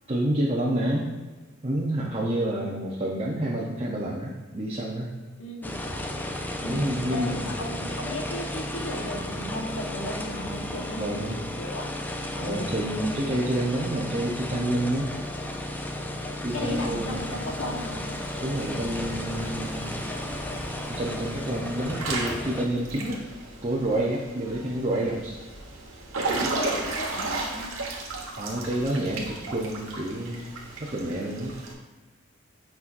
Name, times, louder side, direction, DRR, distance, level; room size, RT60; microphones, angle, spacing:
voice 1, 0.1-1.1 1.6-5.1 6.7-7.5 11.0-11.4 12.4-15.1 16.4-17.2 18.4-19.9 20.9-23.2 23.6-25.4 28.4-30.5 30.8-31.6, right 1 dB, 30° right, -4 dB, 0.8 m, -28 dB
voice 2, 5.4-5.8 6.6-11.3 11.6-11.9 12.4-12.7 16.5-18.0 24.5-24.6 26.5-27.7, left 1 dB, 75° left, 1 dB, 1.3 m, -35 dB
sound 1, 5.6-22.7, left 1 dB, 10° left, 0.5 m, -34 dB
Water / Splash splatter / Drip, 16.5-31.7, right 2 dB, 80° right, 1.4 m, -36 dB
8.4 x 5.6 x 2.6 m, 1.3 s
head